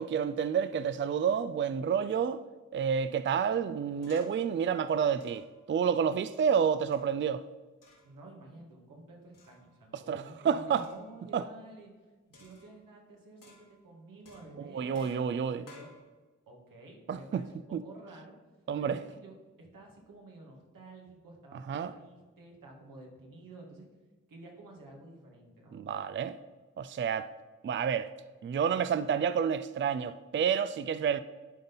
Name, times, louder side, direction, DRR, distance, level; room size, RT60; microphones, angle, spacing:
voice 1, 0.0-2.4 2.7-7.4 10.1-10.9 11.3-11.4 14.6-15.6 17.1-17.4 17.7-17.8 18.7-19.0 21.7-21.9 25.7-26.4 26.8-27.3 27.6-28.1 28.4-31.2, right 7 dB, 40° right, 0.4 m, -29 dB
sound 1, 4.0-4.5 5.2-5.6 6.3-7.3 7.8-8.2 9.3-9.8 10.8-11.2 12.3-13.0 13.4-13.9 14.3-16.0, left 2 dB, 85° left, 2.3 m, -57 dB
voice 2, 8.0-11.9 12.3-15.9 16.5-18.4 18.8-23.9 24.3-25.8, right 2 dB, 90° right, 2.0 m, -51 dB
10.5 x 4.0 x 5.5 m
cardioid pair, 55°, 32 cm